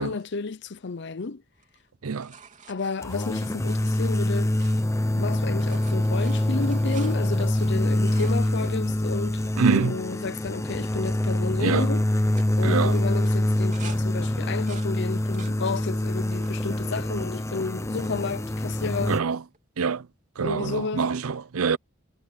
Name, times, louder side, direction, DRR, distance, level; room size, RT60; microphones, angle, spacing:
voice 1, 0.0-1.4 2.7-4.5 5.1-12.0 12.5-19.2 20.4-21.0, left 4 dB, 55° left, 0.6 m, -32 dB
sound 1, 1.5-5.2 5.5-9.8 10.4-10.5 10.7-11.2 11.4-11.8 12.2-14.0 14.4-15.6 16.1-16.6 17.2-17.9 19.5-19.6, right 6 dB, 35° right, 3.3 m, -49 dB
sound 2, 3.0-19.2, left 1 dB, 15° left, 0.7 m, -25 dB
voice 2, 9.6-10.0 11.6-11.9 12.6-13.0 19.1-19.4 19.8-20.1 20.4-21.8, right 5 dB, 85° right, 0.6 m, -25 dB
head